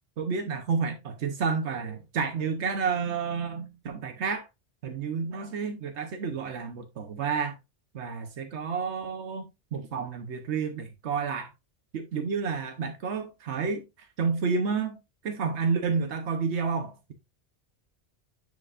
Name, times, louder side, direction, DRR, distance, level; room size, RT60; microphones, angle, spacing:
voice 1, 0.2-4.5 4.8-7.6 7.9-11.5 11.9-15.0 15.2-17.1, right 5 dB, 90° right, 1.2 m, -30 dB
9.8 x 5.2 x 2.4 m
omnidirectional pair, 1.1 m